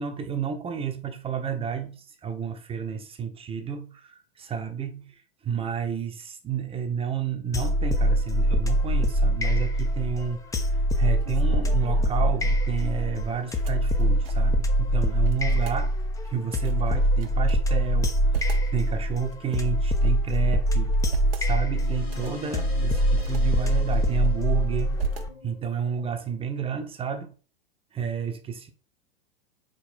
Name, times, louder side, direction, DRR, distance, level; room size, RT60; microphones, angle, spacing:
voice 1, 0.0-15.9 16.2-20.9 21.4-25.0 25.4-27.3 27.9-28.7, right 7 dB, 20° right, 1.0 m, -31 dB
sound 1, 7.5-25.3, equal, 10° left, 0.8 m, -24 dB
sound 2, 10.8-14.6 14.9-15.0 15.2-15.8 16.5-17.5 18.0-18.7 19.3-20.3 20.8-21.5 22.0-22.5 23.0-23.4 23.9-24.5 25.0-25.7, right 8 dB, 65° right, 1.1 m, -36 dB
sound 3, 21.7-26.5, left 6 dB, 85° left, 2.8 m, -42 dB
5.3 x 4.4 x 6.1 m
figure-of-eight pair, 95°, 31 cm